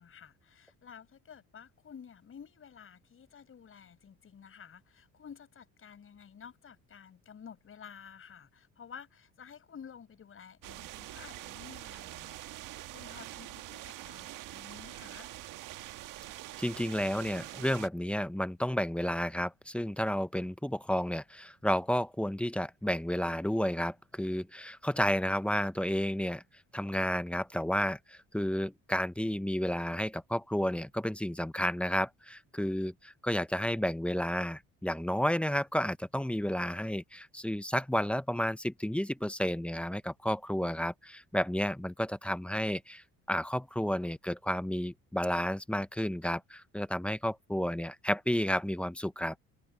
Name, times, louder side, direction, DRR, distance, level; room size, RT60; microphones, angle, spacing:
voice 1, 0.0-15.3, left 7 dB, 40° left, 7.2 m, -52 dB
sound 1, 10.6-17.9, right 15 dB, 75° right, 1.5 m, -45 dB
voice 2, 16.6-26.4 26.7-49.3, equal, 5° left, 0.8 m, -31 dB
cardioid pair, 115°, 32 cm